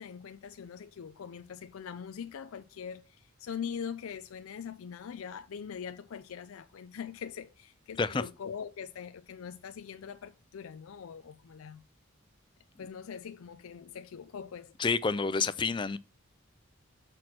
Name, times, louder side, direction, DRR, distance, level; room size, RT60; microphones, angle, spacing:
voice 1, 0.0-11.8 12.8-14.7, left 7 dB, 85° left, 0.4 m, -42 dB
voice 2, 14.8-16.0, left 4 dB, 20° left, 0.4 m, -28 dB
6.2 x 6.2 x 4.3 m
head